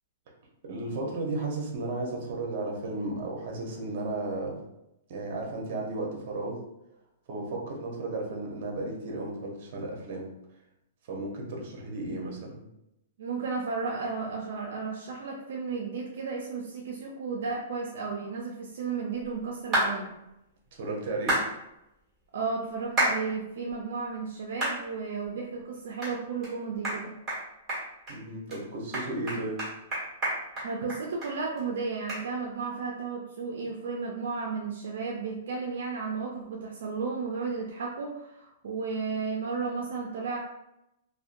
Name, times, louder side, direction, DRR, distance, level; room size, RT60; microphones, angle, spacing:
voice 1, 0.7-4.6 5.1-6.6 7.3-10.3 11.1-12.6 20.8-21.4 28.1-29.6, right 2 dB, 50° right, 0 dB, 0.7 m, -34 dB
voice 2, 13.2-20.1 22.3-27.1 30.6-40.4, right 4 dB, 75° right, 0 dB, 0.4 m, -33 dB
sound 1, 19.7-19.9 21.3-21.5 23.0-23.2 23.7-23.8 24.6-24.8 25.2-25.3 26.0-26.1 26.4-26.5 26.8-27.0 27.3-27.4 27.7-28.1 28.5-28.6 28.9-31.3 31.6-31.7 32.1-32.2, right 1 dB, 15° right, 1.3 m, -28 dB
2.6 x 2.1 x 2.5 m, 0.86 s
hypercardioid pair, 160°, 0 cm